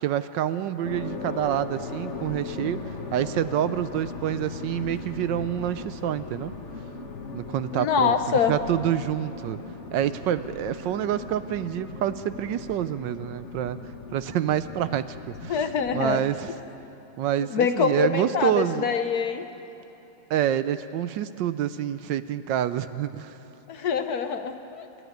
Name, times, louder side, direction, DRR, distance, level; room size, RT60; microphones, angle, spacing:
voice 1, 0.0-6.5 7.3-9.6 9.9-13.8 14.1-15.6 15.9-16.5 17.2-18.9 20.3-23.4, right 11 dB, 75° right, 13 dB, 1.2 m, -27 dB
sound 1, 0.8-16.2, left 3 dB, 40° left, 1.3 m, -38 dB
voice 2, 7.7-8.6 15.5-16.2 17.5-19.4 23.7-24.9, left 6 dB, 60° left, 8 dB, 1.2 m, -25 dB
28.0 x 11.5 x 9.2 m, 3.0 s
omnidirectional pair, 2.1 m